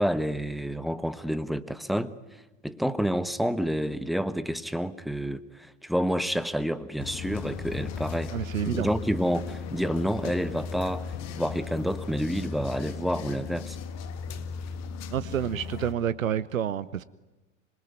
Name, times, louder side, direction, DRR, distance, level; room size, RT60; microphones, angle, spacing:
voice 1, 0.0-2.1 2.6-8.3 8.7-13.8, equal, ahead, 14 dB, 1.2 m, -29 dB
sound 1, 7.0-15.9, left 5 dB, 40° left, 1.9 m, -36 dB
voice 2, 8.3-8.9 15.1-17.0, right 9 dB, 80° right, 17 dB, 0.8 m, -29 dB
26.0 x 22.0 x 9.3 m, 1.1 s
figure-of-eight pair, 80°, 40 cm